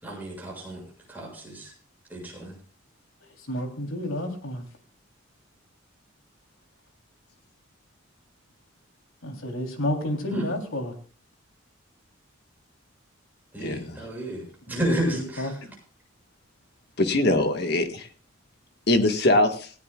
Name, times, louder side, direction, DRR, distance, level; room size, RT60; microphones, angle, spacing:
voice 1, 0.0-0.8 1.1-1.7 2.1-2.5 10.3-10.5 13.5-15.5, right 1 dB, 10° right, -1 dB, 7.2 m, -31 dB
voice 2, 3.5-4.6 9.2-10.9 15.1-15.5, left 1 dB, 85° left, 3 dB, 3.4 m, -30 dB
voice 3, 13.6-14.0 17.0-18.1 18.9-19.7, left 1 dB, 50° left, 6 dB, 1.7 m, -22 dB
18.5 x 17.0 x 2.4 m, 0.41 s
head